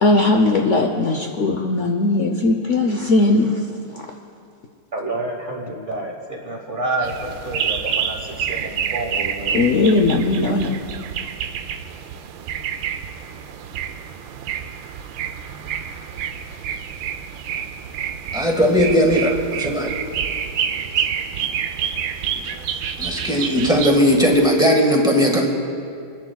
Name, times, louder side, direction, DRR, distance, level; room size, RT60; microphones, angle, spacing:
voice 1, 0.0-4.1 9.5-10.8, left 2 dB, 80° left, 2 dB, 0.6 m, -18 dB
voice 2, 4.9-9.7, right 2 dB, 30° right, -1 dB, 1.2 m, -29 dB
sound 1, 7.0-24.5, right 8 dB, 75° right, 1.3 m, -28 dB
voice 3, 18.3-19.9 23.0-25.5, equal, ahead, 0 dB, 1.3 m, -17 dB
29.5 x 10.5 x 2.3 m, 2.4 s
omnidirectional pair, 2.2 m